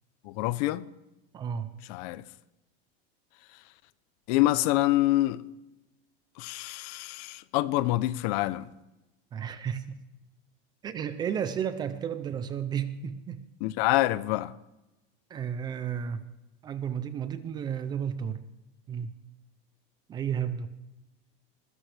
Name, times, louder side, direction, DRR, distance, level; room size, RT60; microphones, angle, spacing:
voice 1, 0.3-0.9 1.9-2.2 4.3-5.4 6.4-8.6 13.6-14.5, left 17 dB, 40° left, 0.6 m, -26 dB
voice 2, 1.3-1.7 9.3-10.0 10.8-13.5 15.3-16.2 16.6-18.4 18.9-19.1 20.1-20.7, right 8 dB, 15° right, 0.4 m, -32 dB
21.0 x 15.5 x 3.3 m
supercardioid pair, 175°, 29 cm